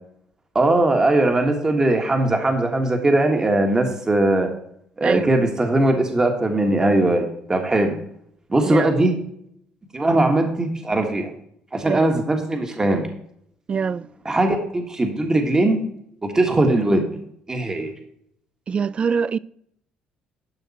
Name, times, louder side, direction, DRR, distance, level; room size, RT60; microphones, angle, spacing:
voice 1, 0.5-4.5 5.0-7.9 8.5-9.1 9.9-11.3 11.7-13.1 14.2-15.8 16.2-17.2 17.5-17.9, right 2 dB, 20° right, 1.5 m, -20 dB
voice 2, 13.7-14.1 18.7-19.4, right 6 dB, 35° right, 0.3 m, -24 dB
11.5 x 5.8 x 4.2 m
supercardioid pair, 85°, 3 cm